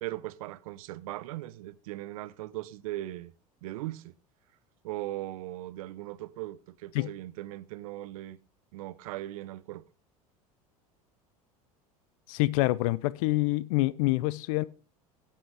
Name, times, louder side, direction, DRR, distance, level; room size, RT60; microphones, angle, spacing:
voice 1, 0.0-3.3 3.6-4.1 4.8-8.4 8.7-9.8, right 16 dB, 70° right, 0.6 m, -39 dB
voice 2, 12.3-14.6, left 19 dB, 65° left, 0.6 m, -26 dB
13.5 x 8.4 x 3.4 m
hypercardioid pair, 80°, 19 cm